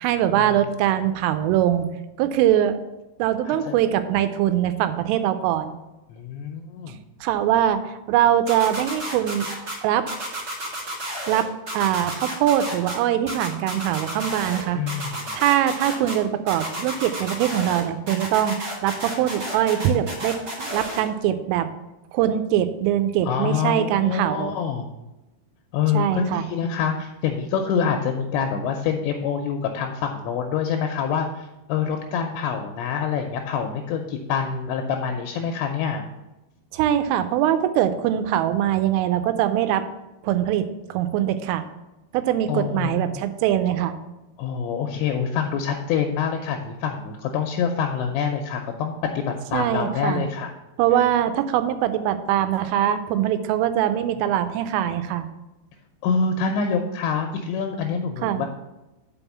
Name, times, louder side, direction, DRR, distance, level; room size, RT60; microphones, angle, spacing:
voice 1, 0.0-1.9 2.2-2.8 3.2-5.7 7.2-9.5 9.8-10.1 11.3-11.5 11.7-14.8 15.3-21.7 22.1-24.5 25.9-26.5 36.7-39.8 40.2-41.6 42.1-44.0 49.5-50.2 50.8-55.3 58.2-58.4, right 11 dB, 90° right, 10 dB, 3.2 m, -22 dB
voice 2, 6.1-7.0 14.7-15.3 23.2-24.9 25.7-36.0 42.5-43.2 44.4-50.5 56.0-58.5, left 6 dB, 80° left, 4 dB, 2.7 m, -26 dB
sound 1, 8.5-9.7 10.1-11.4 11.7-12.9 13.3-14.6 14.9-16.1 16.5-17.8 18.1-21.0, right 1 dB, 50° right, 1.2 m, -32 dB
6.2 x 5.5 x 7.1 m, 0.99 s
omnidirectional pair, 5.6 m